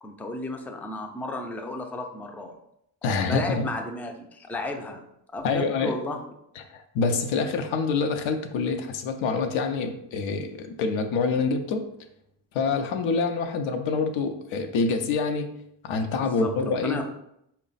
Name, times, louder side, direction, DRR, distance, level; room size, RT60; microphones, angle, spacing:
voice 1, 0.0-2.6 3.0-5.0 5.3-6.2 16.2-17.0, left 2 dB, 5° left, 3 dB, 0.3 m, -33 dB
voice 2, 3.0-3.7 4.5-4.6 5.4-6.0 6.6-11.8 12.5-17.0, left 4 dB, 85° left, 6 dB, 0.6 m, -26 dB
4.0 x 2.2 x 3.9 m, 0.76 s
cardioid pair, 80°, 46 cm